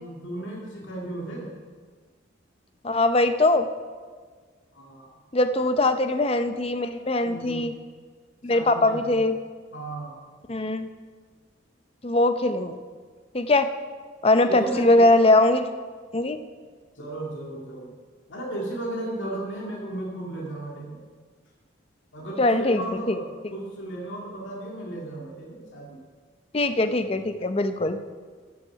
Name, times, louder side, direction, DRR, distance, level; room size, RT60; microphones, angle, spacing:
voice 1, 0.0-1.6 4.7-5.1 5.8-5.9 7.2-7.7 8.5-9.2 9.7-10.2 14.5-15.4 17.0-17.9 18.3-21.0 22.1-26.0, right 1 dB, 75° left, -3 dB, 2.1 m, -35 dB
voice 2, 2.8-3.7 5.3-7.7 8.4-9.4 10.5-10.9 12.0-12.8 13.3-13.7 14.2-15.7 16.1-16.4 22.4-23.2 26.5-28.0, left 2 dB, 30° left, 9 dB, 0.6 m, -21 dB
12.5 x 7.2 x 5.8 m, 1.6 s
head